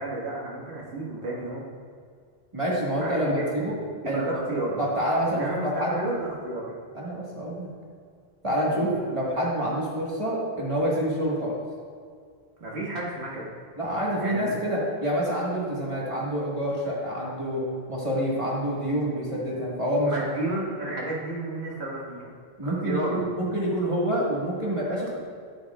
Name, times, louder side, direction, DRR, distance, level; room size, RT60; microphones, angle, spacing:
voice 1, 0.0-1.7 3.0-3.6 4.0-4.9 5.3-6.8 8.7-9.0 12.6-13.5 14.2-14.6 20.1-22.3 22.6-23.2, right 2 dB, 90° right, -4 dB, 2.0 m, -32 dB
voice 2, 2.5-3.7 4.0-4.4 4.8-5.9 6.9-7.7 8.4-11.6 13.8-17.6 17.9-20.1 22.6-25.2, equal, 30° right, -5 dB, 1.6 m, -27 dB
9.4 x 8.1 x 2.4 m, 2.1 s
omnidirectional pair, 1.1 m